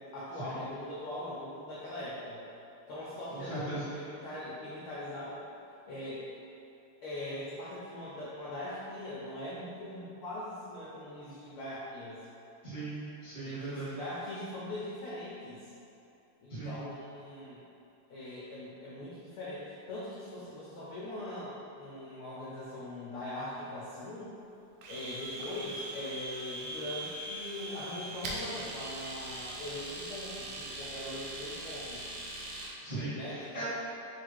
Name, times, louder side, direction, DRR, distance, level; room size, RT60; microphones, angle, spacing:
voice 1, 0.0-2.4 2.9-5.4 5.9-6.2 7.0-12.2 13.4-15.7 16.4-17.6 18.1-24.3 24.9-32.1 33.1-33.6, left 1 dB, 90° left, -8 dB, 1.2 m, -41 dB
voice 2, 3.3-3.8 12.6-13.9 16.5-16.9 32.8-33.6, right 2 dB, 25° right, -13 dB, 0.6 m, -39 dB
Domestic sounds home sounds, 24.8-32.8, right 1 dB, 80° right, 1.8 m, -41 dB
4.8 x 2.4 x 4.5 m, 2.8 s
omnidirectional pair, 3.3 m